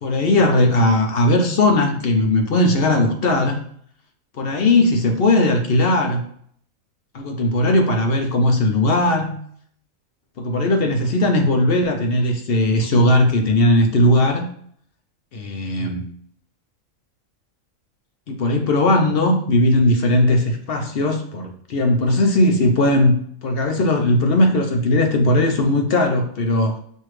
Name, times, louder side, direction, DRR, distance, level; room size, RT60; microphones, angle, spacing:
voice 1, 0.0-3.6 4.4-6.2 7.1-9.4 10.4-14.5 15.3-16.1 18.3-26.7, left 1 dB, 55° left, 3 dB, 0.7 m, -18 dB
6.1 x 2.7 x 3.1 m, 0.63 s
omnidirectional pair, 1.4 m